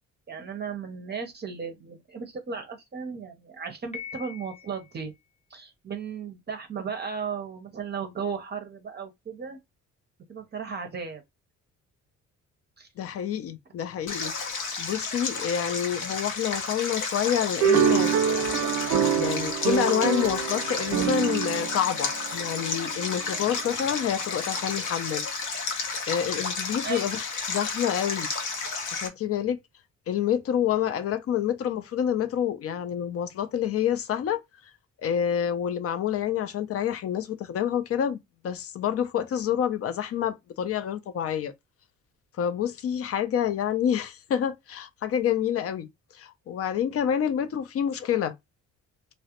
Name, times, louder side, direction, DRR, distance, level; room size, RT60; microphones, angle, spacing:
voice 1, 0.3-5.1 5.5-9.6 10.3-11.2 12.8-12.9 26.8-27.1, right 6 dB, 35° right, 0.6 m, -35 dB
Piano, 3.9-5.1, left 7 dB, 20° left, 0.8 m, -42 dB
voice 2, 13.0-14.3 14.8-18.5 18.7-25.2 26.1-28.3 28.9-29.6 30.1-34.4 35.0-38.2 38.4-41.5 42.4-45.9 46.2-48.3, left 9 dB, 50° left, 0.5 m, -28 dB
Stream, 14.1-29.1, left 4 dB, 85° left, 0.8 m, -32 dB
sound 1, 17.6-23.2, right 8 dB, 90° right, 0.5 m, -26 dB
2.3 x 2.1 x 2.8 m
cardioid pair, 90°, 30 cm